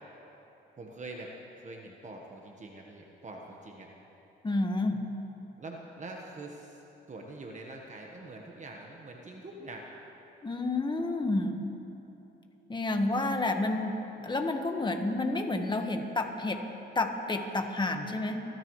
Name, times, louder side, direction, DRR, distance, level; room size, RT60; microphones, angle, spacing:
voice 1, 0.8-3.9 5.6-6.8 7.1-9.9, right 2 dB, 35° right, 0 dB, 1.4 m, -44 dB
voice 2, 4.4-5.1 10.4-11.6 12.7-16.6 16.9-18.4, left 2 dB, 20° left, 4 dB, 1.5 m, -30 dB
29.5 x 13.5 x 3.2 m, 3.0 s
cardioid pair, 90°, 20 cm